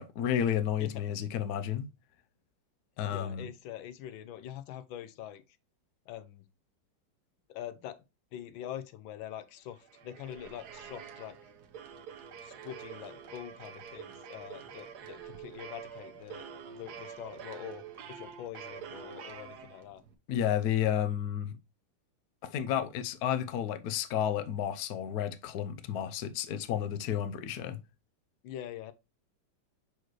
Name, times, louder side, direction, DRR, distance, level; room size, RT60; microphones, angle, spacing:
voice 1, 0.0-1.9 3.0-3.5 20.3-21.6 22.4-27.8, left 10 dB, 65° left, 1.1 m, -31 dB
voice 2, 3.1-5.4 6.1-6.5 7.5-8.0 8.3-11.5 12.4-20.0 28.4-28.9, left 11 dB, 85° left, 1.4 m, -44 dB
sound 1, 9.7-20.1, right 7 dB, 60° right, 1.3 m, -47 dB
6.2 x 5.0 x 3.1 m
omnidirectional pair, 2.1 m